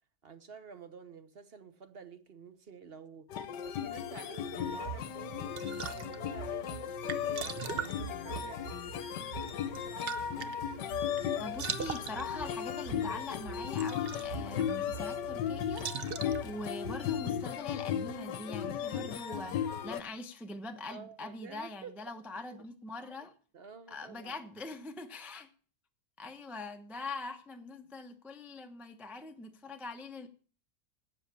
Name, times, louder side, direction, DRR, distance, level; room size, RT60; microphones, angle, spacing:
voice 1, 0.2-8.7 20.9-22.1 23.5-24.4, right 5 dB, 40° right, 0.9 m, -50 dB
sound 1, 3.3-20.0, left 8 dB, 65° left, 1.4 m, -36 dB
sound 2, 4.6-17.5, right 8 dB, 65° right, 0.5 m, -43 dB
voice 2, 11.3-23.3 23.9-25.5 26.2-30.3, left 2 dB, ahead, 0.5 m, -43 dB
12.5 x 8.2 x 7.0 m
omnidirectional pair, 2.2 m